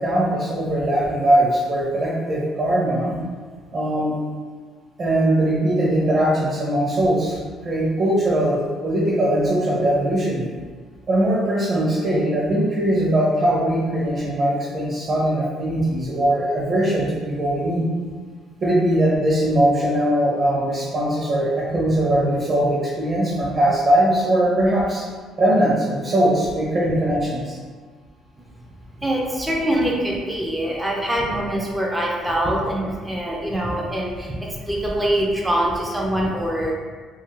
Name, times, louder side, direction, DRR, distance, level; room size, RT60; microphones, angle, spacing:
voice 1, 0.0-3.1 3.7-4.1 5.0-7.4 7.6-10.4 11.1-17.8 18.6-25.0 25.4-27.6, right 1 dB, 40° right, -6 dB, 0.7 m, -20 dB
voice 2, 29.0-36.7, right 1 dB, 5° right, -3 dB, 0.4 m, -24 dB
2.8 x 2.4 x 3.1 m, 1.5 s
cardioid pair, 135°, 0 cm